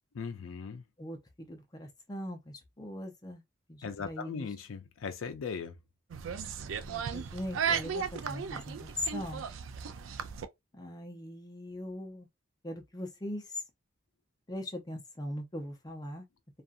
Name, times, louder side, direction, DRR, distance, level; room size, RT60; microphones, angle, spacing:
voice 1, 0.1-0.8 3.8-5.8, left 5 dB, 85° left, 0.4 m, -38 dB
voice 2, 1.0-3.4 3.7-4.5 6.9-9.5 10.7-12.3 12.6-13.6 14.5-16.3, left 1 dB, 20° left, 0.6 m, -40 dB
sound 1, 6.1-10.5, right 6 dB, 70° right, 0.4 m, -35 dB
2.6 x 2.4 x 2.4 m
head